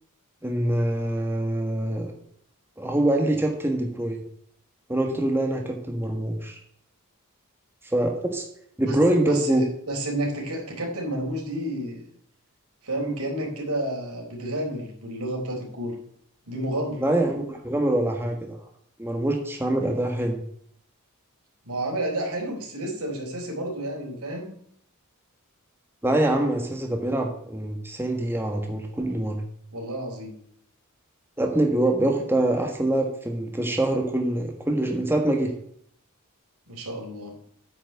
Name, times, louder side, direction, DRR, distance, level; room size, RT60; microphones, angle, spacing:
voice 1, 0.4-2.1 2.8-4.2 4.9-6.6 7.9-8.4 8.8-9.6 17.0-18.6 19.0-20.4 26.0-29.4 31.4-35.5, right 1 dB, 10° right, 2 dB, 1.4 m, -24 dB
voice 2, 8.8-12.0 12.8-16.0 16.5-17.0 21.6-24.5 29.7-30.3 36.7-37.3, right 1 dB, 90° right, 0 dB, 4.0 m, -30 dB
9.2 x 6.2 x 7.7 m, 0.66 s
head